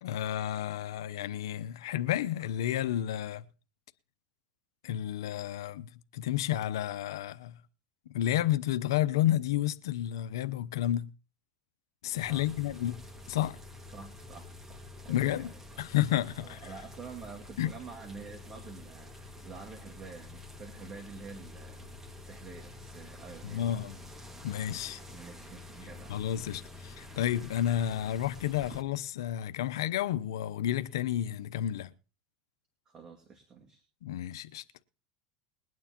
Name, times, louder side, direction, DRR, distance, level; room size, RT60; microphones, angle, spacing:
voice 1, 0.0-3.4 4.8-7.6 8.1-11.1 12.0-13.0 13.3-13.6 15.1-15.5 15.8-16.6 17.6-17.7 23.5-23.9 24.4-25.0 26.1-31.9 34.0-34.6, left 12 dB, 85° left, 0.7 m, -31 dB
sound 1, 12.1-28.8, left 2 dB, 15° right, 1.9 m, -48 dB
voice 2, 13.9-15.6 16.4-23.8 25.0-26.2 32.9-33.8, right 5 dB, 30° right, 2.2 m, -48 dB
21.5 x 9.4 x 2.9 m
supercardioid pair, 110°, 2 cm